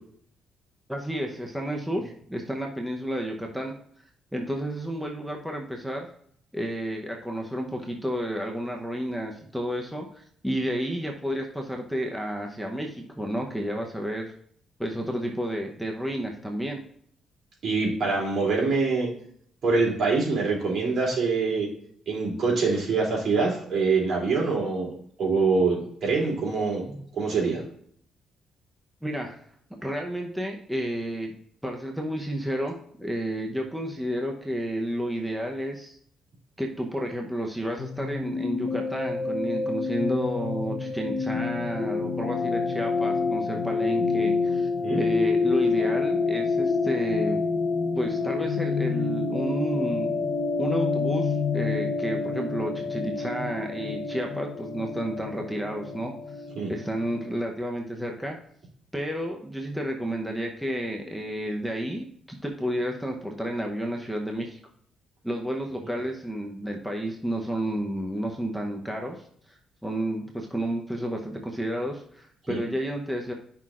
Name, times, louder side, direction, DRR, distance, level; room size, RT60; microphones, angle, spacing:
voice 1, 0.9-3.8 4.3-6.1 6.5-14.3 14.8-16.8 26.9-27.1 29.0-29.4 29.8-31.3 31.6-36.0 36.6-47.4 48.0-50.1 50.6-58.4 58.9-64.6 65.2-73.3, equal, ahead, 0 dB, 0.9 m, -31 dB
voice 2, 17.6-19.1 19.6-21.7 22.1-26.9 27.1-27.6 44.8-45.0 56.5-56.7 72.5-72.6, right 4 dB, 60° right, -3 dB, 3.0 m, -25 dB
sound 1, 37.8-57.3, left 4 dB, 50° left, 0.8 m, -28 dB
10.5 x 5.9 x 2.5 m, 0.64 s
cardioid pair, 90°, 0 cm